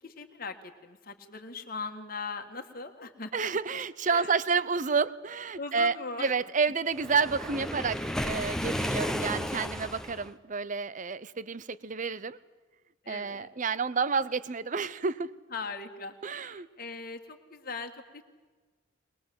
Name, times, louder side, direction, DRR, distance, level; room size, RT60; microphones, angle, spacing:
voice 1, 0.0-3.6 4.1-4.4 5.6-6.3 13.0-13.5 15.5-18.2, left 4 dB, 50° left, 5 dB, 1.7 m, -40 dB
voice 2, 3.3-12.4 13.1-15.3 16.2-16.7, right 5 dB, 40° right, 17 dB, 0.7 m, -30 dB
Waves surf, 7.0-10.3, equal, 5° left, 1.0 m, -33 dB
21.5 x 21.5 x 7.7 m, 1.3 s
head